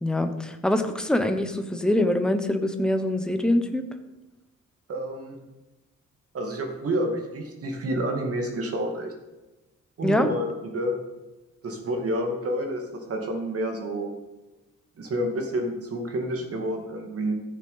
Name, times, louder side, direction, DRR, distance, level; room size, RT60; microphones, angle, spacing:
voice 1, 0.0-3.8 10.0-10.3, left 1 dB, 5° left, 7 dB, 0.9 m, -24 dB
voice 2, 4.9-5.4 6.3-9.1 10.0-10.9 11.6-14.1 15.0-17.3, right 1 dB, 50° right, 3 dB, 2.2 m, -29 dB
14.5 x 6.7 x 5.5 m, 1.1 s
cardioid pair, 150°, 31 cm